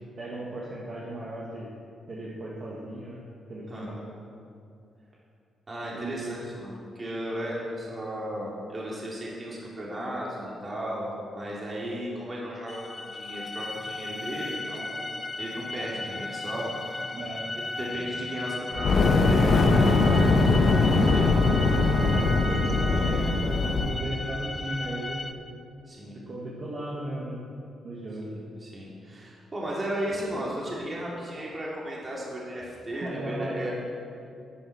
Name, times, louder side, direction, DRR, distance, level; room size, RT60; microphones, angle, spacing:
voice 1, 0.2-1.7 2.1-3.2 3.5-4.0 5.9-6.4 17.1-17.5 20.9-21.1 22.1-25.2 26.1-27.4 27.8-28.3 32.9-33.7, right 1 dB, 45° right, -5 dB, 1.8 m, -36 dB
voice 2, 3.7-4.1 5.7-15.1 15.4-16.6 17.8-21.4 25.9-26.2 28.2-33.7, equal, 30° right, -5 dB, 2.5 m, -35 dB
sound 1, 12.7-25.3, left 2 dB, 25° left, 0.6 m, -35 dB
Fire, 18.7-24.0, left 3 dB, 55° left, 1.1 m, -21 dB
Wind instrument woodwind instrument, 18.7-23.6, right 3 dB, 85° right, 2.4 m, -38 dB
11.0 x 7.9 x 5.8 m, 2.5 s
cardioid pair, 95°, 0 cm